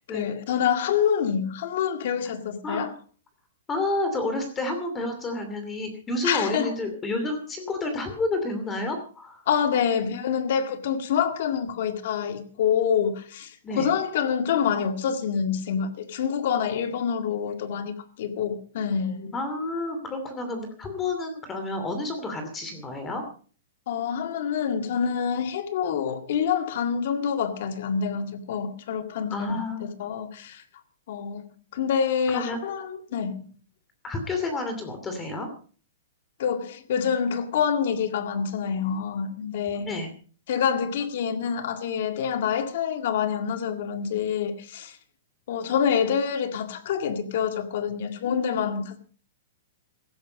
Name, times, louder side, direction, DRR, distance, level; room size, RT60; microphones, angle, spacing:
voice 1, 0.1-2.9 6.2-6.7 9.5-19.3 23.9-30.6 31.1-31.5 31.7-33.5 36.4-39.9 40.5-45.0 45.5-49.0, left 7 dB, 55° left, 2.0 m, -27 dB
voice 2, 3.7-9.4 9.9-10.2 13.6-13.9 19.3-23.2 29.3-29.9 32.3-32.6 34.0-35.5 39.8-40.1, left 2 dB, 15° left, 2.6 m, -30 dB
15.5 x 12.5 x 5.2 m
hypercardioid pair, 165°, 0 cm